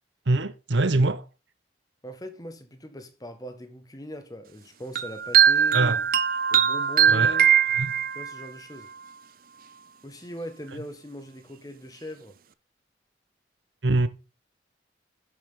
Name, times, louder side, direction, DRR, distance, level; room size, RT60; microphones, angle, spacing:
voice 1, 0.3-1.2 5.7-6.0 7.1-7.4 7.8-7.9 13.8-14.1, right 2 dB, 75° right, 1.0 m, -23 dB
voice 2, 2.0-6.0 6.5-7.5 8.1-8.9 10.0-12.4, equal, 20° left, 1.6 m, -40 dB
sound 1, 5.0-8.5, right 8 dB, 50° right, 0.6 m, -21 dB
11.5 x 7.6 x 3.8 m
head